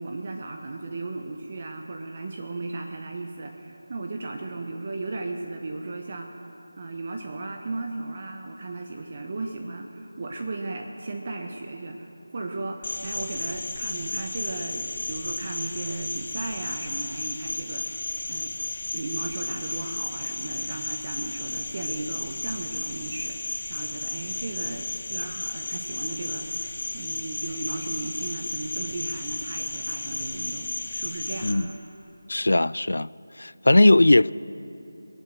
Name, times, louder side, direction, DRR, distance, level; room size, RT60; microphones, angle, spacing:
voice 1, 0.0-6.3 6.8-18.5 18.9-31.8, right 3 dB, 40° right, 1.0 m, -35 dB
Cricket, 12.8-31.5, left 3 dB, 50° left, 1.3 m, -33 dB
voice 2, 32.3-33.1 33.4-34.3, left 2 dB, 70° left, 0.3 m, -18 dB
22.5 x 7.5 x 7.7 m
figure-of-eight pair, 165°, 0 cm